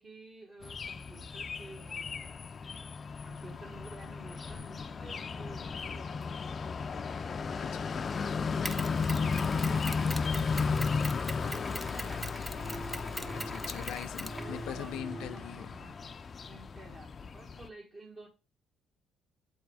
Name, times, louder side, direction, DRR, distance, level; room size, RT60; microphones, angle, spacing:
voice 1, 0.0-2.4 3.2-7.1 9.3-10.9 11.4-12.5 14.4-16.2 16.5-18.3, right 3 dB, 30° right, 1.3 m, -51 dB
sound 1, 0.6-17.7, left 5 dB, 35° left, 0.4 m, -35 dB
voice 2, 7.6-8.0 13.3-15.7, left 10 dB, 85° left, 0.5 m, -42 dB
Mechanisms, 8.6-15.0, right 1 dB, 10° right, 0.6 m, -42 dB
sound 2, 12.5-13.9 14.2-15.7, right 1 dB, 75° right, 1.9 m, -45 dB
7.7 x 3.5 x 4.8 m
cardioid pair, 120°, 0 cm